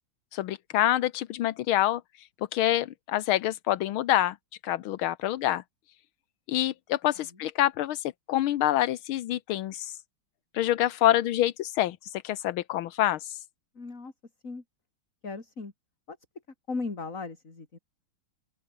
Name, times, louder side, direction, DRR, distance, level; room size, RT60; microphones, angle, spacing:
voice 1, 0.3-2.3 2.5-4.4 4.6-5.6 6.5-10.0 10.5-13.4, left 13 dB, 85° left, 1.7 m, -26 dB
voice 2, 13.8-14.1 14.4-14.6 15.2-15.7 16.1-16.2 16.7-17.8, left 3 dB, 40° left, 3.8 m, -37 dB
open air
omnidirectional pair, 2.2 m